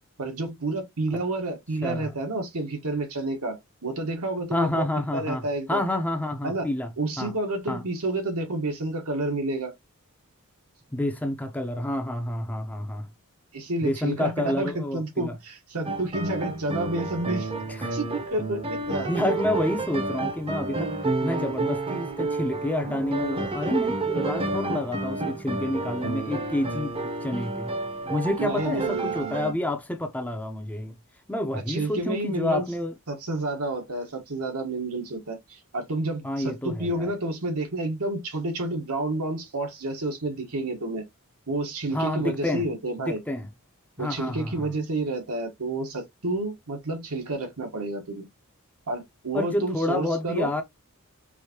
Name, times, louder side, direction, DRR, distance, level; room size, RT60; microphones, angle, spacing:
voice 1, 0.2-4.8 5.1-5.8 6.4-6.7 7.0-9.7 13.5-17.5 17.9-19.1 28.4-29.5 31.5-32.6 33.1-41.0 41.5-43.2 44.0-48.3 48.9-50.5, right 2 dB, 85° right, 1.3 m, -30 dB
voice 2, 1.8-2.1 4.5-6.9 7.2-7.3 7.7-7.8 10.9-13.1 13.8-15.4 17.7-18.0 19.1-20.9 21.2-26.9 27.2-27.7 28.1-31.0 31.3-32.9 36.2-37.1 41.9-42.6 43.0-43.5 44.0-44.7 49.3-50.6, left 1 dB, 5° left, 0.6 m, -29 dB
sound 1, 15.8-29.5, right 2 dB, 25° right, 0.7 m, -30 dB
4.8 x 2.7 x 2.8 m
head